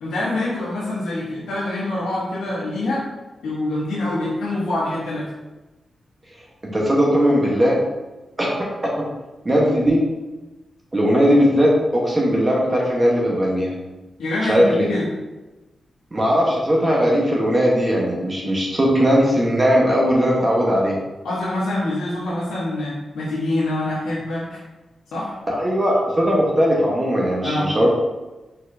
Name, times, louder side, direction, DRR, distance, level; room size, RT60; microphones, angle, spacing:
voice 1, 0.0-3.0 3.4-5.3 14.2-15.1 21.2-24.6 25.1-25.3 27.4-27.7, left 1 dB, 90° left, -9 dB, 1.0 m, -25 dB
voice 2, 6.7-7.8 8.4-9.0 9.4-10.0 10.9-13.7 14.4-14.9 16.1-21.0 25.5-27.9, equal, 30° right, -3 dB, 1.1 m, -18 dB
4.4 x 4.1 x 2.6 m, 1.1 s
cardioid pair, 50°, 0 cm